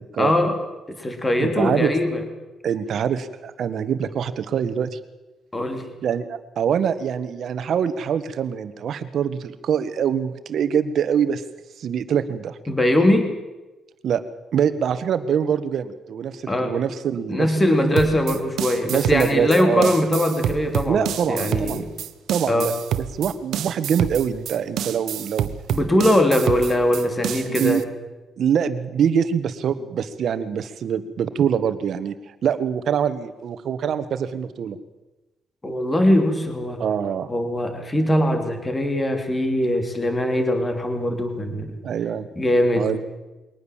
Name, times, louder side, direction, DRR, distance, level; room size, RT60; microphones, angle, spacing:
voice 1, 0.2-0.6 0.9-2.2 5.5-5.9 12.7-13.3 16.5-16.7 17.3-21.9 22.5-22.7 25.7-27.8 35.6-36.8 37.3-41.8 42.4-42.9, left 1 dB, 15° left, 6 dB, 2.8 m, -21 dB
voice 2, 1.4-1.9 2.6-5.0 6.0-11.4 11.8-12.6 14.0-14.2 14.5-17.5 18.9-19.9 20.8-21.9 22.3-25.5 27.5-27.8 28.4-34.8 36.8-37.3 41.8-42.3 42.7-43.0, right 8 dB, 55° right, 12 dB, 1.5 m, -24 dB
sound 1, 18.0-27.8, right 10 dB, 75° right, 1.2 m, -28 dB
22.5 x 18.5 x 7.4 m, 1.1 s
cardioid pair, 145°, 0 cm